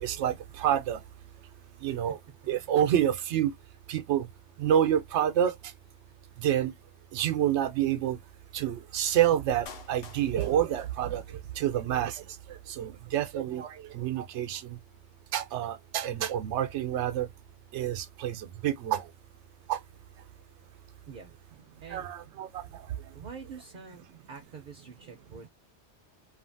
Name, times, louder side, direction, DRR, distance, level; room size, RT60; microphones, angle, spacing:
voice 1, 0.0-1.0 1.8-2.2 2.5-3.5 3.9-4.3 4.6-5.5 6.4-6.7 7.1-8.2 8.5-11.2 11.6-12.2 12.8-14.8 15.3-17.3 17.7-19.0 19.7-19.8 21.9-22.6, right 10 dB, 80° right, 0.9 m, -28 dB
Clapping, 9.7-11.6 11.9-12.0, left 5 dB, 60° left, 0.8 m, -49 dB
voice 2, 23.1-25.5, right 5 dB, 50° right, 0.7 m, -46 dB
2.7 x 2.5 x 2.5 m
omnidirectional pair, 1.2 m